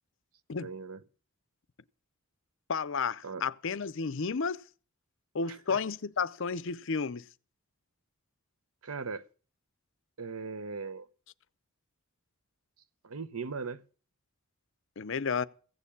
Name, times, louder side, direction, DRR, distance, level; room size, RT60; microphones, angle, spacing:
voice 1, 0.6-1.0 3.2-3.4 5.5-5.8 8.8-9.2 10.2-11.1 13.0-13.8, right 4 dB, 75° right, 0.8 m, -39 dB
voice 2, 2.7-4.6 5.3-7.2 15.0-15.5, left 5 dB, 60° left, 0.6 m, -32 dB
15.5 x 6.9 x 8.6 m
head